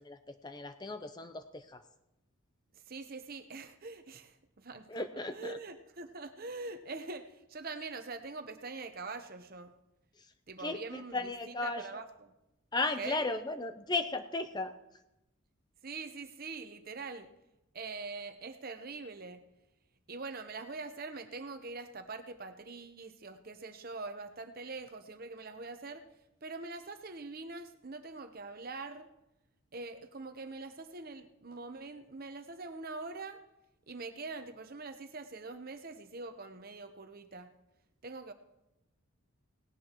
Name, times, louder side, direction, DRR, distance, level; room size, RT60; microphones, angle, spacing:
voice 1, 0.0-1.8 4.9-5.6 10.6-11.9 12.7-14.7, left 3 dB, 20° left, 9 dB, 0.6 m, -35 dB
voice 2, 2.7-5.0 5.3-9.7 10.5-12.3 13.0-13.3 15.8-17.3 17.7-19.4 20.1-26.0 26.4-29.1 29.7-33.4 33.9-37.5 38.0-38.3, right 3 dB, 45° right, 8 dB, 0.9 m, -43 dB
18.0 x 17.5 x 3.0 m, 0.92 s
head